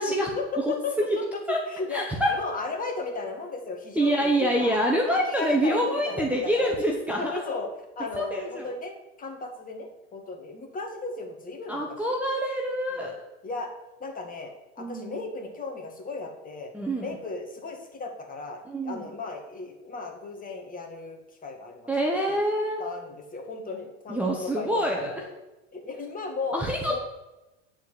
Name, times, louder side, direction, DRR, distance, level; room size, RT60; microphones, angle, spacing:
voice 1, 0.1-4.7 5.1-6.8 7.1-7.7 8.0-12.2 12.9-13.1 13.4-13.7 14.0-16.7 17.0-22.4 22.8-25.3 25.7-26.6 26.9-27.0, left 3 dB, 25° left, 3 dB, 2.0 m, -35 dB
voice 2, 1.9-2.3 3.9-7.4 8.2-8.7 11.7-13.1 14.8-15.2 16.7-17.2 18.7-19.1 21.9-22.8 24.1-25.1 26.5-27.0, equal, 5° right, -1 dB, 1.2 m, -26 dB
10.0 x 4.6 x 7.9 m, 1.0 s
supercardioid pair, 115°, 35 cm